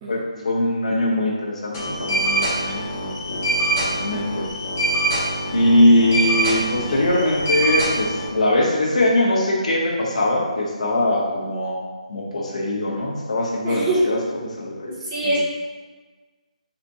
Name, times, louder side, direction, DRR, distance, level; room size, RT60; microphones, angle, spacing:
voice 1, 0.1-3.4 3.8-4.5 5.5-14.2 14.4-15.4, left 1 dB, 60° left, -2 dB, 1.1 m, -21 dB
sound 1, 1.7-8.3, right 1 dB, 15° left, 0.9 m, -24 dB
voice 2, 13.6-14.1 15.1-15.4, right 1 dB, 15° right, -5 dB, 0.5 m, -23 dB
4.2 x 4.2 x 2.7 m, 1.3 s
hypercardioid pair, 175°, 4 cm